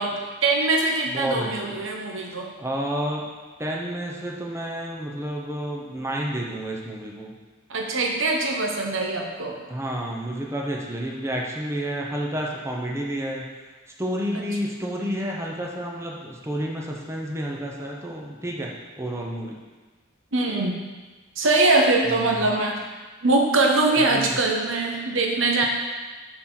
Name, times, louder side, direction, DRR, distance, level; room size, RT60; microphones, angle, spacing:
voice 1, 0.0-2.5 7.7-9.6 20.3-20.8 21.4-22.8 23.2-25.7, right 2 dB, 70° right, 1 dB, 1.1 m, -22 dB
voice 2, 1.1-1.7 2.6-3.2 3.6-7.3 9.7-13.4 14.0-19.6 22.0-22.5 24.0-24.4, equal, 15° right, -2 dB, 0.8 m, -30 dB
10.5 x 4.4 x 3.9 m, 1.3 s
head